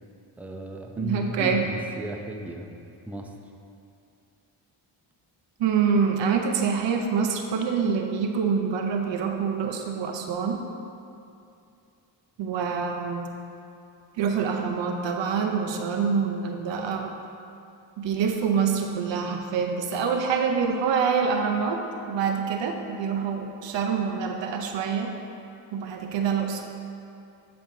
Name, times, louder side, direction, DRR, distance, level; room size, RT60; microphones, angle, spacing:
voice 1, 0.4-2.7 3.1-3.3, right 1 dB, 5° right, 3 dB, 0.5 m, -34 dB
voice 2, 1.0-1.7 5.6-10.6 12.4-13.3 14.2-17.2 18.0-21.8 22.1-25.1 25.7-26.6, right 6 dB, 85° right, 4 dB, 0.7 m, -26 dB
10.0 x 5.5 x 2.7 m, 2.6 s
cardioid pair, 80°, 43 cm